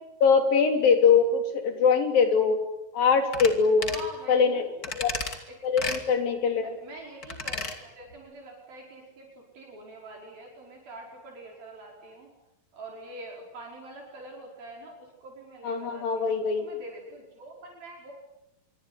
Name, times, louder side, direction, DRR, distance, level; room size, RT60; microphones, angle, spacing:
voice 1, 0.2-2.6 2.9-3.9 4.3-4.7 5.0-5.1 5.6-6.7 15.6-16.7, left 5 dB, 65° left, 7 dB, 4.9 m, -22 dB
sound 1, 3.3-3.5 3.8-4.1 4.8-5.4 5.8-6.0 7.2-7.8 8.1-8.2, left 3 dB, 25° left, 2.5 m, -33 dB
voice 2, 3.9-4.6 5.5-5.6 6.5-12.3 12.7-18.1, right 2 dB, 70° right, 0 dB, 7.2 m, -45 dB
26.0 x 23.5 x 9.7 m, 0.86 s
omnidirectional pair, 4.4 m